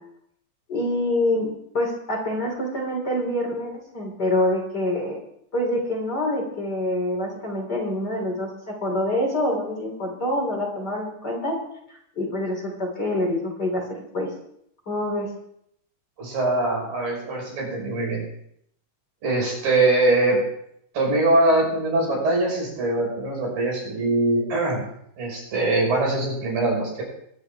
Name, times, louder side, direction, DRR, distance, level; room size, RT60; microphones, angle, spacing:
voice 1, 0.7-1.5 1.7-5.2 5.5-11.6 11.9-13.8 14.1-14.3 14.9-15.3, left 1 dB, 30° left, -1 dB, 3.6 m, -26 dB
voice 2, 16.2-18.2 19.2-20.4 20.9-24.8 25.2-27.0, right 2 dB, 70° right, -2 dB, 7.4 m, -22 dB
23.0 x 11.5 x 3.5 m, 0.72 s
omnidirectional pair, 4.1 m